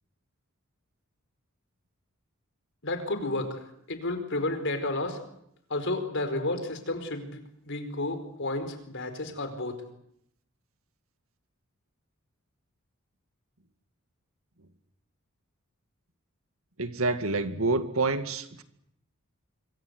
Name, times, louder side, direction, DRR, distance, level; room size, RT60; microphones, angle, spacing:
voice 1, 2.8-5.2 5.7-9.8, left 2 dB, 60° left, 8 dB, 4.8 m, -32 dB
voice 2, 16.8-18.6, right 3 dB, 70° right, 9 dB, 2.2 m, -27 dB
25.5 x 24.5 x 8.1 m, 0.74 s
head